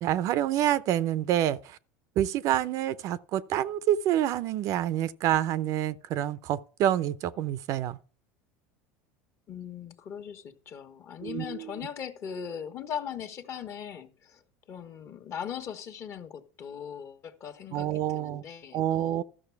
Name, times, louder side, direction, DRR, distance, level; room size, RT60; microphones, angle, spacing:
voice 1, 0.0-1.8 2.2-8.0 11.2-11.6 17.7-18.4 18.7-19.2, right 12 dB, 55° right, 0.6 m, -27 dB
voice 2, 9.5-19.2, left 8 dB, 45° left, 1.4 m, -39 dB
13.5 x 6.2 x 4.6 m
supercardioid pair, 115°, 7 cm